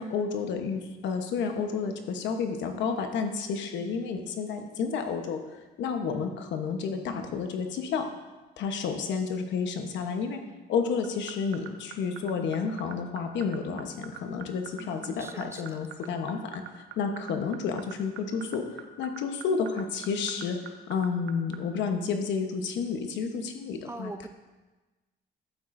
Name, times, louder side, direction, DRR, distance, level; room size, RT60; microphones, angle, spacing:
voice 1, 0.0-8.1 8.6-10.4 10.7-20.6 20.9-24.1, left 5 dB, 75° left, 5 dB, 1.1 m, -31 dB
sound 1, 11.0-21.6, right 12 dB, 70° right, 0.8 m, -41 dB
voice 2, 14.8-15.8 23.9-24.3, right 2 dB, 15° right, 8 dB, 0.4 m, -42 dB
12.0 x 8.9 x 2.6 m, 1.2 s
cardioid pair, 115°, 19 cm